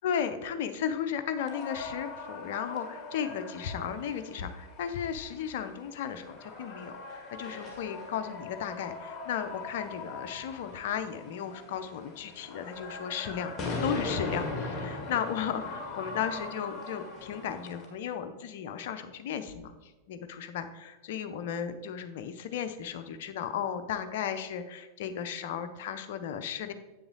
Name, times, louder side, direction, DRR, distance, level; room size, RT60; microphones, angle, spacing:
voice 1, 0.0-26.7, left 8 dB, 55° left, 9 dB, 0.6 m, -35 dB
sound 1, 1.3-17.9, left 3 dB, 20° left, 1.9 m, -40 dB
7.7 x 6.9 x 3.9 m, 1.1 s
figure-of-eight pair, 90°, 0 cm